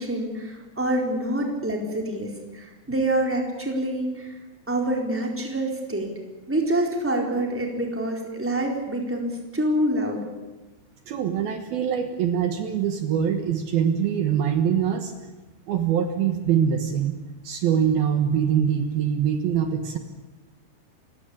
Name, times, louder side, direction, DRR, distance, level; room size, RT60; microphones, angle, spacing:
voice 1, 0.0-4.4 4.7-6.1 6.5-10.2, right 1 dB, 5° right, 1 dB, 3.7 m, -26 dB
voice 2, 11.1-15.1 15.7-17.2 17.4-20.0, right 8 dB, 65° right, 7 dB, 3.0 m, -23 dB
29.5 x 17.0 x 8.7 m, 1.2 s
omnidirectional pair, 4.9 m